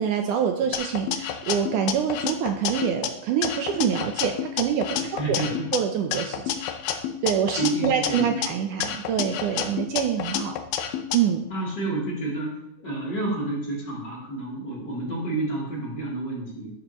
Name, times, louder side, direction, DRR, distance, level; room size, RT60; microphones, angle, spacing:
voice 1, 0.0-5.4 5.7-6.6 7.2-10.6 11.1-11.5, right 8 dB, 75° right, 4 dB, 2.1 m, -26 dB
sound 1, 0.7-3.1 3.4-5.8 6.1-8.5 8.8-11.2, left 9 dB, 85° left, 2.6 m, -29 dB
voice 2, 5.0-5.7 7.6-8.4 11.5-12.5 12.8-16.7, right 2 dB, 30° left, -5 dB, 3.5 m, -29 dB
12.0 x 11.5 x 3.0 m, 0.77 s
omnidirectional pair, 4.0 m